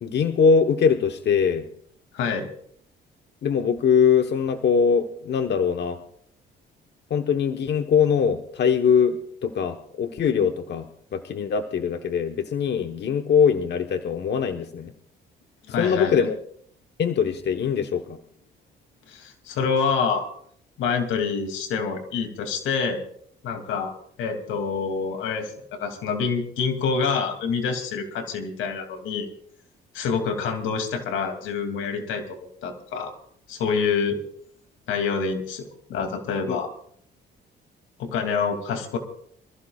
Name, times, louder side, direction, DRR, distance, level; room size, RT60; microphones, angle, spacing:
voice 1, 0.0-1.6 3.4-6.0 7.1-10.8 11.1-14.9 15.8-16.3 17.0-18.2 36.5-36.6, left 6 dB, 60° left, 5 dB, 1.2 m, -22 dB
voice 2, 2.1-2.5 15.7-16.3 19.1-20.3 20.8-23.0 23.4-23.9 24.2-29.3 29.9-32.2 32.6-33.1 33.5-34.2 34.9-36.7 38.0-39.0, left 5 dB, 90° left, 5 dB, 2.7 m, -26 dB
26.0 x 15.0 x 2.4 m, 0.63 s
cardioid pair, 90°, 20 cm